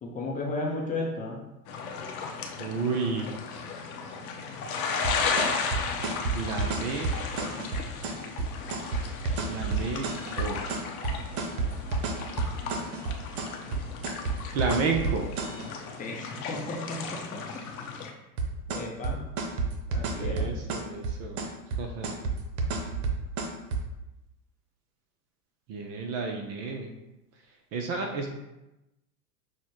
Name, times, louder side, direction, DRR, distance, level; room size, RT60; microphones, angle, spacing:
voice 1, 0.0-1.4 2.2-2.4 16.0-17.6 18.7-19.3 19.9-20.5, left 2 dB, 15° left, -1 dB, 0.6 m, -34 dB
sound 1, 1.7-18.1, left 5 dB, 65° left, 0.8 m, -35 dB
voice 2, 2.6-3.3 6.3-7.1 9.4-10.1 10.4-10.6 14.5-15.3 20.2-21.5 21.8-22.2 25.7-26.9 27.7-28.3, right 4 dB, 35° right, 3 dB, 0.5 m, -31 dB
sound 2, 5.0-15.7 18.4-23.8, right 4 dB, 65° right, 0.8 m, -30 dB
6.1 x 2.1 x 3.0 m, 0.97 s
hypercardioid pair, 95°, 47 cm